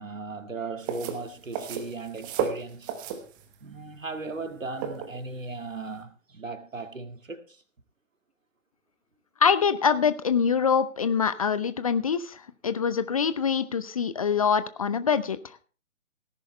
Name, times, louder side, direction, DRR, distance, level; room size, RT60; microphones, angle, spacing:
voice 1, 0.0-3.0 3.6-7.6, right 3 dB, 75° right, 2.0 m, -37 dB
sound 1, 0.8-6.0, right 7 dB, 15° right, 1.0 m, -34 dB
voice 2, 9.4-15.4, left 6 dB, 25° left, 0.6 m, -24 dB
17.5 x 10.5 x 3.3 m
figure-of-eight pair, 135°, 39 cm